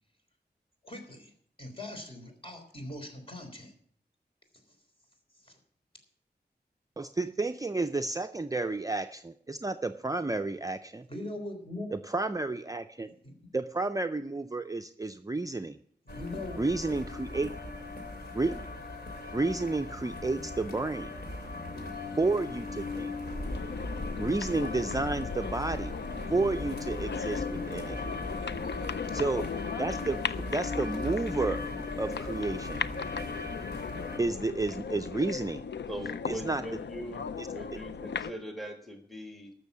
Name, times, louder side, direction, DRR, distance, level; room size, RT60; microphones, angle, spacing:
voice 1, 0.8-1.3 1.6-3.7 5.4-5.6 11.1-11.9 13.2-13.5 16.0-16.7, left 1 dB, 30° left, 3 dB, 3.6 m, -41 dB
voice 2, 7.0-11.1 11.9-13.1 13.5-15.8 16.6-17.5 18.3-18.6 19.3-21.1 22.2-23.1 24.2-25.9 26.3-28.0 29.1-29.5 29.8-31.6 32.0-32.8 34.2-35.6 36.3-36.6 37.4-37.5, right 3 dB, 20° right, 8 dB, 0.5 m, -31 dB
sound 1, 16.1-34.2, left 2 dB, 65° left, 2.9 m, -38 dB
sound 2, 23.4-38.3, left 6 dB, 85° left, 0.5 m, -37 dB
voice 3, 35.9-39.5, equal, ahead, 3 dB, 1.7 m, -41 dB
14.0 x 6.3 x 8.3 m, 0.65 s
wide cardioid pair, 75°, 18 cm